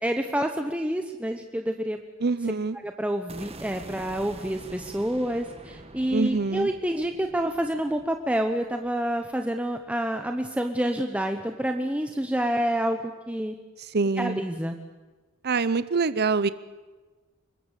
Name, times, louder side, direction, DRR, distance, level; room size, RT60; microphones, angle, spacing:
voice 1, 0.0-2.0 2.8-13.6 14.2-14.8, right 1 dB, 5° right, 5 dB, 1.0 m, -28 dB
voice 2, 2.2-2.8 6.1-6.7 13.9-14.4 15.4-16.5, right 4 dB, 50° right, 15 dB, 0.7 m, -25 dB
sound 1, 3.3-9.3, right 2 dB, 30° right, 1.5 m, -46 dB
25.0 x 22.0 x 8.3 m, 1.3 s
head